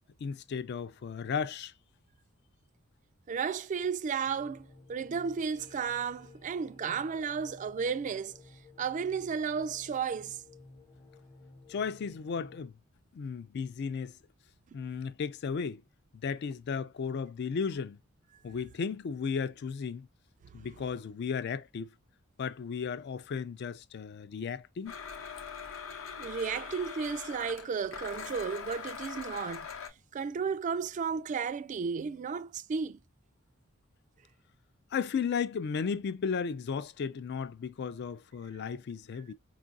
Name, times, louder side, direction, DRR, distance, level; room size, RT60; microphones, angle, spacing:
voice 1, 0.2-1.7 11.7-12.7 13.1-14.1 14.7-15.8 16.2-18.0 18.4-20.1 20.5-21.9 22.4-24.9 34.9-39.3, left 6 dB, 55° left, 0.3 m, -34 dB
voice 2, 3.3-8.4 8.8-10.4 26.2-29.7 30.1-33.0, right 6 dB, 40° right, 0.3 m, -33 dB
sound 1, 4.2-12.7, left 3 dB, 25° left, 0.7 m, -55 dB
Domestic sounds home sounds, 24.9-29.9, left 6 dB, 70° left, 0.8 m, -42 dB
4.5 x 2.4 x 2.4 m
head